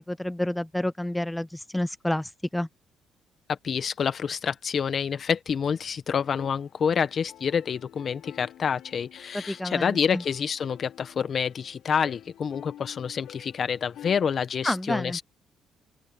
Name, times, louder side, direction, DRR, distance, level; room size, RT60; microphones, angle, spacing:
voice 1, 0.0-2.7 9.3-10.2 14.6-15.2, left 1 dB, 5° left, 0.4 m, -29 dB
voice 2, 3.5-15.2, left 7 dB, 50° left, 1.4 m, -28 dB
sound 1, 6.2-14.4, left 12 dB, 80° left, 6.2 m, -49 dB
open air
cardioid pair, 90°, 0 cm